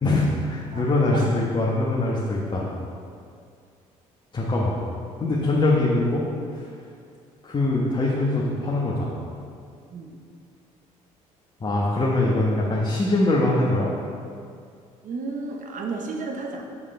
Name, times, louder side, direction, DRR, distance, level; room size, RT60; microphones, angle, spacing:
voice 1, 0.0-2.7 4.3-4.8 5.2-6.2 6.5-6.7 7.4-9.2 11.6-13.9, left 2 dB, 25° left, -5 dB, 1.2 m, -23 dB
voice 2, 15.0-16.6, right 4 dB, 45° right, 2 dB, 1.1 m, -32 dB
7.0 x 7.0 x 3.3 m, 2.3 s
figure-of-eight pair, 50°, 18 cm